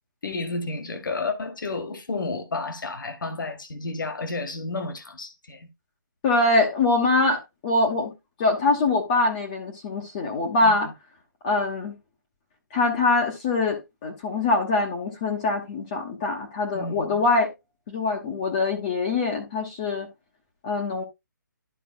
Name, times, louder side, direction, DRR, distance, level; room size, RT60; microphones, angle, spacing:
voice 1, 0.2-5.7 10.6-10.8 16.7-17.2, left 3 dB, 75° left, 1.9 m, -31 dB
voice 2, 6.2-8.1 8.4-10.9 11.4-11.9 12.7-17.5 17.9-20.1 20.6-21.0, left 3 dB, 25° left, 1.1 m, -23 dB
12.5 x 4.9 x 2.4 m
hypercardioid pair, 165°, 11 cm